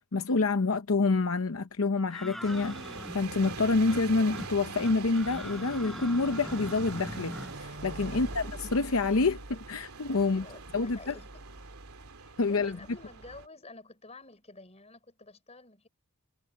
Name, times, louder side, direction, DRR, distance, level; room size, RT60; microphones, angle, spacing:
voice 1, 0.1-10.5 10.7-11.2 12.4-12.8, left 3 dB, 65° left, 0.8 m, -27 dB
sound 1, 2.1-3.5 3.9-4.0 4.3-4.5 4.8-7.6, equal, ahead, 4.5 m, -41 dB
sound 2, 2.4-13.5, right 4 dB, 80° right, 2.5 m, -43 dB
sound 3, 3.1-5.7 6.2-9.0, right 1 dB, 50° right, 5.0 m, -49 dB
voice 2, 10.2-11.5 12.2-15.9, left 3 dB, 30° left, 5.3 m, -51 dB
head